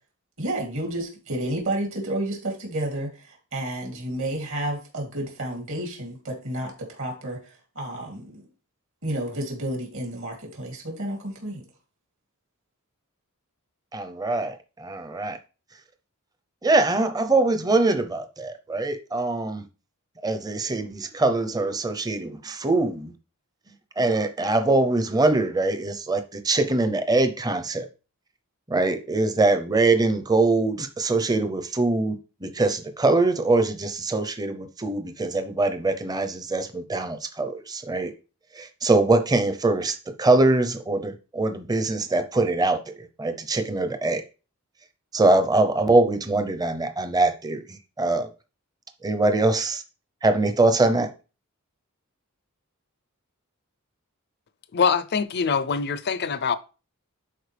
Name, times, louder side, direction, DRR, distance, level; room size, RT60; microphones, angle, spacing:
voice 1, 0.4-8.5 9.0-11.6, right 1 dB, 65° right, 2.8 m, -31 dB
voice 2, 13.9-15.4 16.6-19.6 20.2-23.1 24.0-27.9 28.7-38.1 38.6-44.2 45.1-47.6 48.0-48.3 49.0-49.8 50.2-51.1, right 2 dB, 20° right, 0.7 m, -23 dB
voice 3, 54.7-56.6, left 6 dB, 50° left, 0.5 m, -24 dB
11.0 x 4.4 x 3.4 m
head